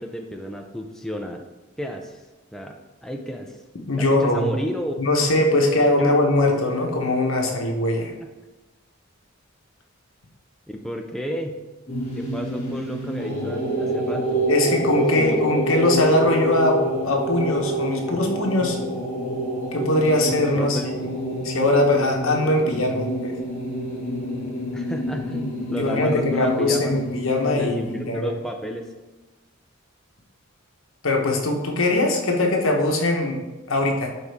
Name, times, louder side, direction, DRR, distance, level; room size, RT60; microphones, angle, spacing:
voice 1, 0.0-1.4 1.8-2.2 2.5-3.6 3.9-5.0 8.2-8.3 10.7-11.6 12.1-14.8 15.1-15.6 20.5-20.9 22.5-23.1 24.7-27.0 27.5-28.9, equal, ahead, 2 dB, 0.5 m, -32 dB
voice 2, 3.9-4.6 5.0-8.1 14.5-18.8 19.7-20.9 21.4-23.4 25.8-27.8 28.1-28.3 31.0-33.4 33.7-34.1, left 1 dB, 70° left, 2 dB, 1.2 m, -21 dB
sound 1, 11.9-28.1, equal, 30° left, 1.9 m, -27 dB
11.0 x 4.2 x 3.5 m, 1.1 s
head